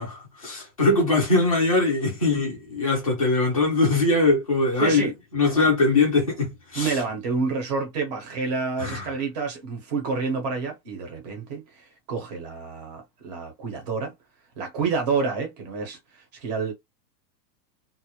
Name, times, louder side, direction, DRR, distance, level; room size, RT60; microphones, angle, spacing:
voice 1, 0.0-7.0 8.8-9.1, left 3 dB, 25° left, 0.3 m, -22 dB
voice 2, 4.8-5.1 5.4-5.7 6.7-14.1 14.6-16.7, right 4 dB, 25° right, 0.5 m, -29 dB
2.4 x 2.0 x 2.7 m
supercardioid pair, 180°, 49 cm